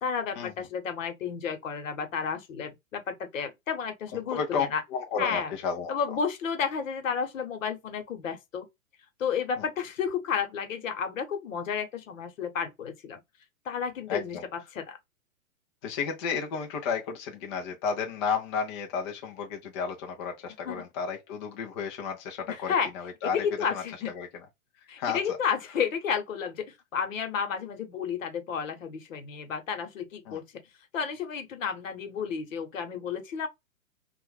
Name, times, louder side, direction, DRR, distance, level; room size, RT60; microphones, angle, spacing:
voice 1, 0.0-4.8 5.2-5.5 5.9-8.7 9.2-13.2 13.6-15.0 20.5-20.8 22.5-22.9 23.2-24.1 24.9-26.7 26.9-30.4 30.9-33.5, left 6 dB, 65° left, 1.1 m, -32 dB
voice 2, 4.3-4.7 4.9-5.9 9.6-9.7 14.1-14.4 15.8-23.8 24.2-24.3 25.0-25.4 30.3-30.4, left 6 dB, 20° left, 0.4 m, -32 dB
2.5 x 2.2 x 3.2 m
hypercardioid pair, 125°, 42 cm